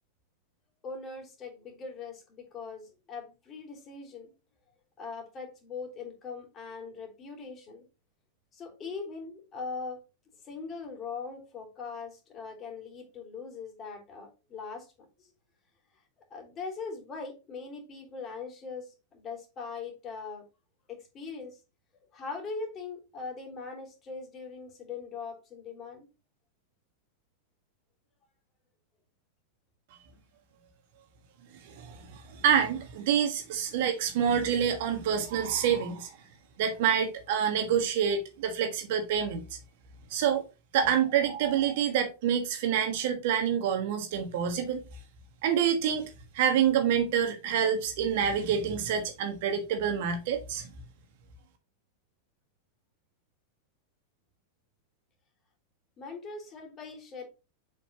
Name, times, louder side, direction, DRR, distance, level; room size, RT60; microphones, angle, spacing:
voice 1, 0.8-4.3 5.0-7.8 8.5-10.0 10.4-15.3 16.3-20.4 20.9-21.6 21.9-26.1 56.0-57.3, left 4 dB, 25° left, 3.2 m, -41 dB
voice 2, 31.6-36.1 36.6-39.4 40.1-40.4 40.7-44.8 45.4-46.1 46.3-50.7, right 8 dB, 50° right, 1.4 m, -27 dB
7.3 x 5.3 x 2.8 m
figure-of-eight pair, 90°, 0 cm